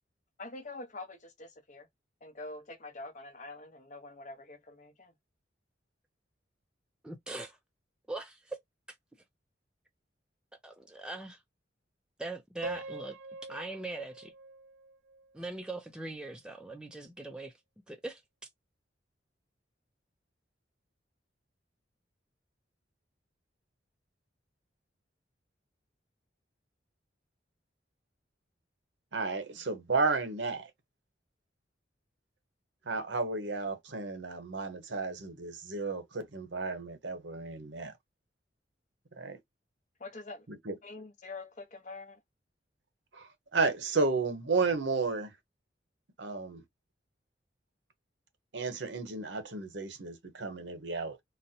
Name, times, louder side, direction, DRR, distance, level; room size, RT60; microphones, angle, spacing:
voice 1, 0.4-1.9 2.2-5.1 40.0-40.5 40.8-42.2, left 3 dB, 40° left, 0.7 m, -45 dB
voice 2, 7.0-7.5 8.1-8.4 10.6-11.4 12.2-13.1 13.5-14.3 15.3-17.5 17.9-18.2, right 2 dB, 5° right, 0.4 m, -41 dB
Piano, 12.6-15.6, right 2 dB, 90° right, 0.4 m, -44 dB
voice 3, 29.1-30.7 32.9-37.9 39.2-39.4 40.7-40.8 43.1-45.3 46.2-46.6 48.5-51.2, right 4 dB, 70° right, 0.8 m, -32 dB
4.0 x 2.1 x 2.6 m
head